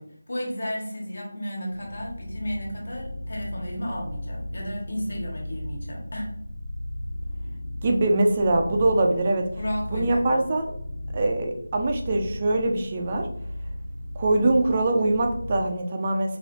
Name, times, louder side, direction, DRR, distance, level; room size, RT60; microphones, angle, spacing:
voice 1, 0.0-6.4 9.6-10.4, equal, 45° left, -2 dB, 1.5 m, -33 dB
sound 1, 1.7-15.6, left 1 dB, 65° left, 0.7 m, -36 dB
voice 2, 7.8-9.5 9.9-10.7 11.1-13.3 14.2-16.4, right 2 dB, 15° right, 3 dB, 0.3 m, -23 dB
5.0 x 2.8 x 2.6 m, 0.68 s
figure-of-eight pair, 180°, 0 cm